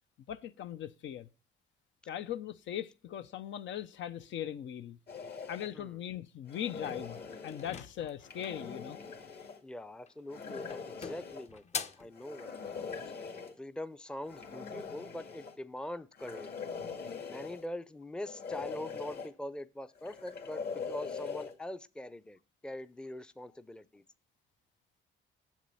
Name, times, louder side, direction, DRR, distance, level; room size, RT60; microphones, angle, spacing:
voice 1, 0.3-1.3 2.1-5.0 5.5-9.0, left 10 dB, 70° left, 0.7 m, -40 dB
sound 1, 5.1-5.7 6.5-7.7 8.2-9.6 10.3-11.5 12.2-13.5 14.3-15.6 16.2-17.7 18.2-19.3 20.0-21.5, left 5 dB, 55° left, 2.1 m, -42 dB
sound 2, 7.5-8.7 10.0-10.4 10.7-12.1, left 5 dB, 35° left, 0.8 m, -42 dB
voice 2, 9.6-12.9 13.2-16.5 17.3-24.0, left 1 dB, 5° left, 0.5 m, -43 dB
7.5 x 7.4 x 5.4 m
cardioid pair, 90°, 20 cm